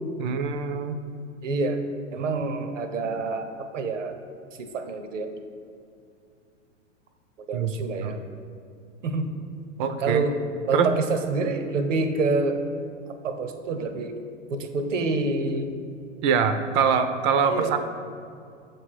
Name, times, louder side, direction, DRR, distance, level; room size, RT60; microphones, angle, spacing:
voice 1, 0.2-1.0 7.5-8.1 9.8-10.2 10.7-11.0 16.2-17.8, right 6 dB, 40° right, 9 dB, 0.5 m, -24 dB
voice 2, 1.4-1.8 2.1-4.1 4.6-5.3 7.5-8.2 9.0-9.3 10.0-10.4 10.7-12.6 13.2-14.2 14.5-15.7 17.5-17.8, right 3 dB, 80° right, 7 dB, 0.8 m, -27 dB
7.0 x 3.4 x 5.9 m, 2.4 s
hypercardioid pair, 105°, 37 cm